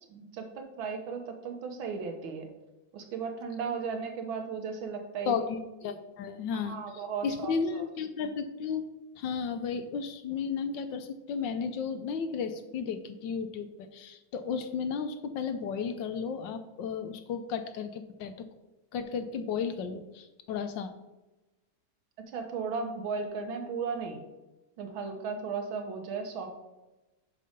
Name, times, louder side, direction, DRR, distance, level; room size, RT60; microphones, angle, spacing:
voice 1, 0.1-2.5 2.9-5.4 5.8-5.9 6.5-7.9 22.3-24.2 24.8-26.5, right 5 dB, 80° right, 4 dB, 1.8 m, -36 dB
voice 2, 5.3-6.7 7.2-8.8 9.2-18.3 18.9-20.9, left 6 dB, 70° left, 9 dB, 1.2 m, -33 dB
6.6 x 5.3 x 5.1 m, 1.1 s
omnidirectional pair, 2.2 m